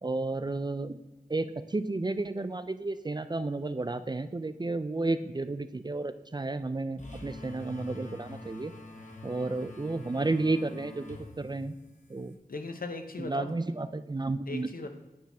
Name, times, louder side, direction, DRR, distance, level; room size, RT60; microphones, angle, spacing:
voice 1, 0.0-1.0 1.3-8.7 9.2-11.7 12.1-12.4 13.2-14.7, right 2 dB, 30° right, 12 dB, 0.3 m, -32 dB
sound 1, 7.0-12.3, left 1 dB, 55° left, 1.1 m, -46 dB
voice 2, 12.5-13.6 14.5-14.9, left 3 dB, 70° left, 5 dB, 0.8 m, -38 dB
8.6 x 5.8 x 3.4 m, 1.1 s
wide cardioid pair, 45°, 15 cm